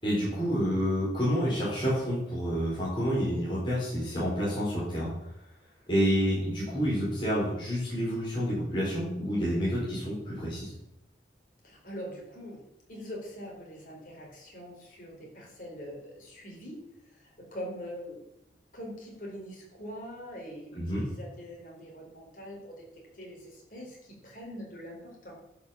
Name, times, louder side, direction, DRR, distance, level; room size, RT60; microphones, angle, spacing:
voice 1, 0.0-5.1 5.9-10.7 20.8-21.1, equal, 25° left, -8 dB, 4.4 m, -29 dB
voice 2, 11.6-12.6 12.9-18.2 18.7-22.9 23.1-25.3, equal, 50° left, -2 dB, 4.0 m, -43 dB
11.0 x 5.9 x 7.2 m, 0.86 s
head